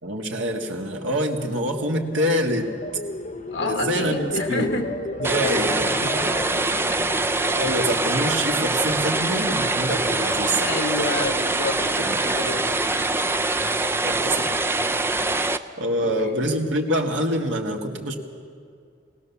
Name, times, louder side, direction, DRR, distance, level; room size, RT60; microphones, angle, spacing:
voice 1, 0.0-2.7 3.6-4.7 5.2-6.6 7.5-10.7 12.0-12.2 14.0-14.5 15.8-18.1, right 1 dB, 70° right, 1 dB, 2.0 m, -26 dB
sound 1, 1.6-8.8 9.2-9.5, left 1 dB, 40° left, 0.8 m, -34 dB
voice 2, 3.5-4.9 5.4-5.7 6.9-7.3 10.6-12.7 16.0-16.3, left 2 dB, 75° left, 4 dB, 1.8 m, -29 dB
sound 2, 5.2-15.6, right 2 dB, 10° right, 0.4 m, -24 dB
22.0 x 17.5 x 7.2 m, 2.3 s
head